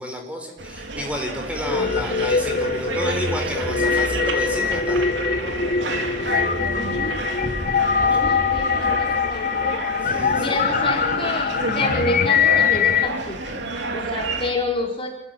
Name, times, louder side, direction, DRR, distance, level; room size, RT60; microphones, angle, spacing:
voice 1, 0.0-5.1 8.0-8.2 10.0-10.7, equal, 10° right, 3 dB, 4.2 m, -31 dB
sound 1, 0.6-14.5, right 2 dB, 80° right, 3.2 m, -29 dB
sound 2, 1.5-13.1, left 6 dB, 50° left, 0.9 m, -22 dB
voice 2, 6.6-7.6 8.1-9.7 10.4-15.1, left 2 dB, 30° left, 1 dB, 4.7 m, -29 dB
28.5 x 14.5 x 9.0 m, 0.83 s
head